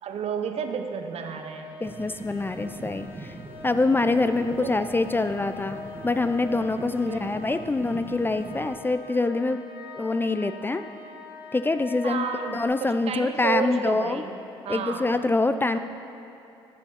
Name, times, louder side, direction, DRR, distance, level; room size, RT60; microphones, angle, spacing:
voice 1, 0.0-1.8 4.6-4.7 7.1-7.2 12.0-14.4 14.6-15.2 15.7-15.8, right 6 dB, 55° right, 6 dB, 0.8 m, -31 dB
sound 1, 1.2-12.7, left 4 dB, 85° left, 0.8 m, -44 dB
voice 2, 1.8-3.3 3.6-5.8 6.0-9.6 10.0-10.8 11.5-12.2 12.5-14.2 14.7-15.8, left 3 dB, 15° left, 10 dB, 0.4 m, -25 dB
sound 2, 1.8-8.8, right 2 dB, 20° right, 1.0 m, -41 dB
10.5 x 5.6 x 5.6 m, 2.7 s
hypercardioid pair, 55°, 12 cm